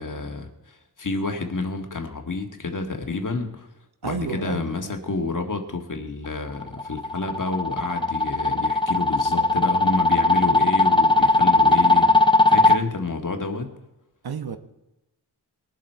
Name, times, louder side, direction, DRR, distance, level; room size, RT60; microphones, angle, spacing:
voice 1, 0.0-3.7 4.0-13.7, left 3 dB, 45° left, 5 dB, 1.7 m, -29 dB
voice 2, 4.0-4.9 14.2-14.6, right 5 dB, 60° right, 9 dB, 1.1 m, -31 dB
sound 1, 6.6-12.8, left 2 dB, 10° left, 0.5 m, -18 dB
20.5 x 7.6 x 4.6 m, 0.96 s
wide cardioid pair, 85°, 42 cm